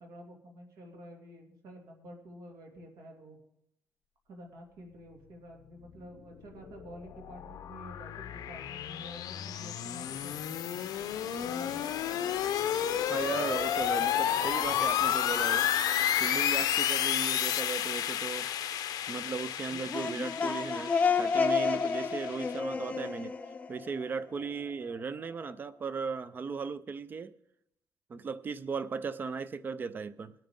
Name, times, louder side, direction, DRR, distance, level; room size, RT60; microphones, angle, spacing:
voice 1, 0.0-3.4 4.3-10.8 11.4-12.2, equal, 75° right, 2.6 m, -49 dB
sound 1, 6.5-22.6, left 10 dB, 80° left, 0.7 m, -31 dB
voice 2, 13.1-15.7 16.2-18.5 19.1-23.4 23.7-27.3 28.1-30.3, right 5 dB, 30° right, 0.5 m, -37 dB
sound 2, 19.7-24.4, left 5 dB, 20° left, 0.6 m, -30 dB
21.0 x 9.0 x 3.7 m
cardioid pair, 170°, 7 cm